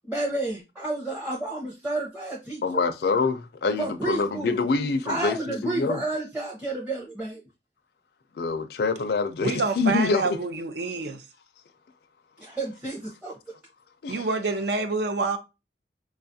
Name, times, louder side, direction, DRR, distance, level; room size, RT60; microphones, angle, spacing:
voice 1, 0.1-2.9 3.8-4.6 5.0-7.4 12.4-13.3, right 2 dB, 10° right, 0.6 m, -31 dB
voice 2, 2.6-6.0 8.4-10.4 14.0-14.3, left 4 dB, 60° left, 0.4 m, -26 dB
voice 3, 9.4-11.2 14.1-15.4, right 3 dB, 70° right, 0.5 m, -27 dB
4.8 x 2.3 x 2.6 m
head